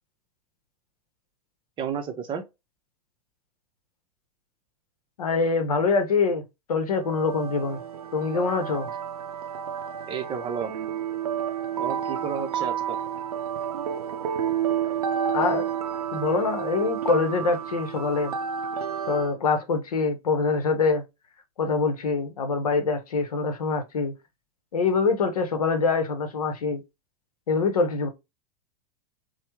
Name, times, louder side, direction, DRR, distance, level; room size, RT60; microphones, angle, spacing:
voice 1, 1.8-2.4 10.0-10.7 11.8-13.0, right 7 dB, 25° right, 0.6 m, -31 dB
voice 2, 5.2-6.4 6.7-7.8 8.1-8.9 15.3-15.7 16.1-18.3 19.1-21.0 21.6-24.1 24.7-26.8 27.5-28.1, left 4 dB, 75° left, 0.7 m, -24 dB
sound 1, 7.0-19.4, right 8 dB, 75° right, 0.4 m, -30 dB
3.2 x 2.0 x 2.9 m
figure-of-eight pair, 95°, 19 cm